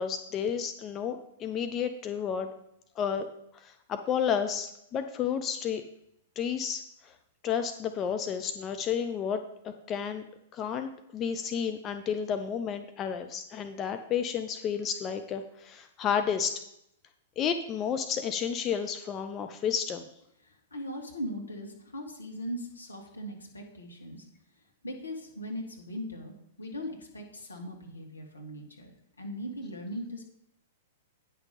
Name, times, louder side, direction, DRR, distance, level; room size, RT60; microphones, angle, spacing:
voice 1, 0.0-2.5 3.0-3.3 3.5-5.8 6.4-7.1 7.4-10.2 10.5-16.6 17.4-20.1, left 7 dB, 25° left, 8 dB, 0.6 m, -31 dB
voice 2, 20.4-24.3 24.8-28.9 29.2-30.2, equal, 80° left, 1 dB, 1.9 m, -39 dB
9.5 x 5.9 x 5.4 m, 0.78 s
figure-of-eight pair, 105°, 0 cm